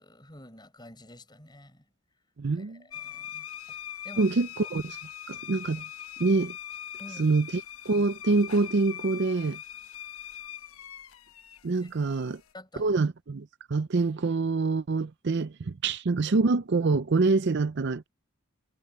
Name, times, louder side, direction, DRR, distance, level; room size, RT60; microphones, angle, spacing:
voice 1, 0.0-1.8 2.5-4.3 7.0-7.4 11.8-11.9 12.5-12.9, left 1 dB, 20° left, 6.9 m, -49 dB
voice 2, 2.4-2.8 4.2-5.0 5.3-5.8 6.2-6.5 7.2-9.6 11.6-12.4 12.8-18.1, right 3 dB, 50° right, 0.5 m, -26 dB
sound 1, 2.9-12.5, left 10 dB, 75° left, 1.1 m, -42 dB
head